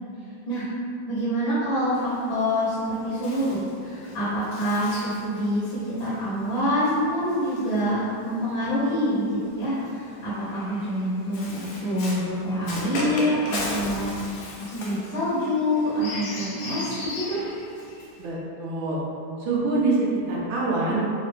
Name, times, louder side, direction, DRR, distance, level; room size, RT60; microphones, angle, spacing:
voice 1, 1.1-9.2 9.5-14.1 14.6-17.4, equal, 60° left, -9 dB, 1.4 m, -26 dB
Bird, 2.0-8.5 9.5-18.3, left 2 dB, 80° left, 1.5 m, -37 dB
voice 2, 18.2-19.0 19.4-20.0 20.3-21.0, right 3 dB, 90° right, -5 dB, 1.6 m, -25 dB
3.9 x 2.8 x 3.4 m, 2.5 s
omnidirectional pair, 2.1 m